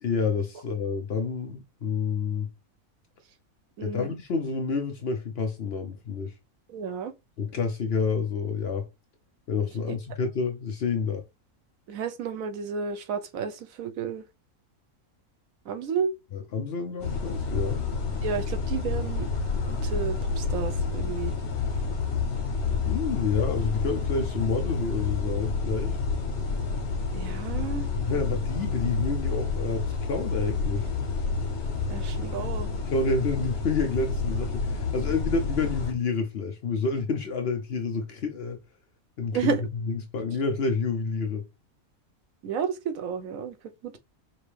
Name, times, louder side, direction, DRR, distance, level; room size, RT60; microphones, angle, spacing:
voice 1, 0.0-2.5 3.8-6.3 7.4-8.9 9.5-11.2 16.3-17.8 22.8-26.0 27.9-30.9 32.9-38.6 39.2-39.6 39.9-41.4, left 4 dB, 55° left, 0.8 m, -29 dB
voice 2, 3.8-4.1 6.7-7.1 9.9-10.0 11.9-14.2 15.7-16.1 18.2-19.3 19.7-21.3 27.1-27.9 31.9-32.7 39.3-39.6 42.4-43.5 43.8-44.0, right 6 dB, 70° right, 1.1 m, -31 dB
sound 1, 17.0-35.9, left 4 dB, 90° left, 1.7 m, -29 dB
5.4 x 2.8 x 3.3 m
omnidirectional pair, 1.5 m